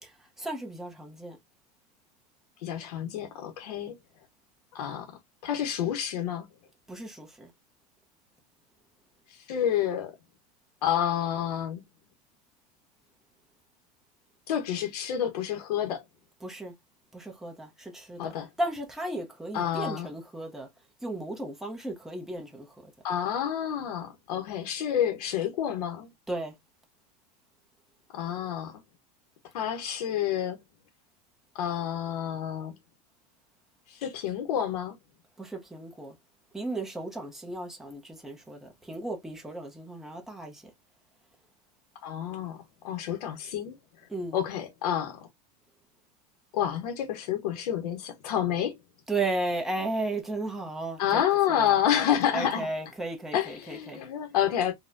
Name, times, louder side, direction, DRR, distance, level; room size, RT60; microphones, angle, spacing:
voice 1, 0.0-1.4 6.9-7.5 16.4-16.7 17.1-20.7 21.0-22.9 26.3-26.5 35.4-36.1 36.5-40.6 44.1-44.4 49.1-51.2 51.5-51.8 52.3-54.0, right 2 dB, ahead, 0.6 m, -35 dB
voice 2, 2.6-4.0 4.7-5.1 5.4-6.5 9.3-10.2 10.8-11.8 14.5-16.0 18.2-18.5 19.5-20.1 23.0-26.1 28.1-28.8 29.5-30.6 31.5-32.7 33.9-35.0 42.0-45.2 46.5-48.8 51.0-52.7 53.3-54.7, left 10 dB, 85° left, 0.8 m, -29 dB
4.1 x 2.2 x 2.4 m
supercardioid pair, 160°, 20 cm